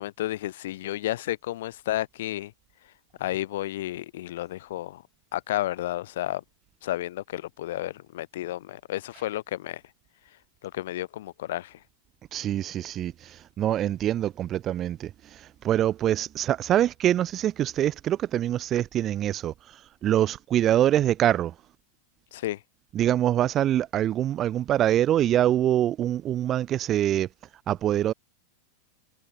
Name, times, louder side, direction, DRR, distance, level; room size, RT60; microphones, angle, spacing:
voice 1, 0.0-2.5 3.2-5.0 5.3-6.4 6.8-9.8 10.6-11.8 22.3-22.6, left 14 dB, 55° left, 0.5 m, -32 dB
voice 2, 12.3-21.5 22.9-27.3 27.7-28.1, right 11 dB, 30° right, 0.5 m, -25 dB
figure-of-eight pair, 90°, 0 cm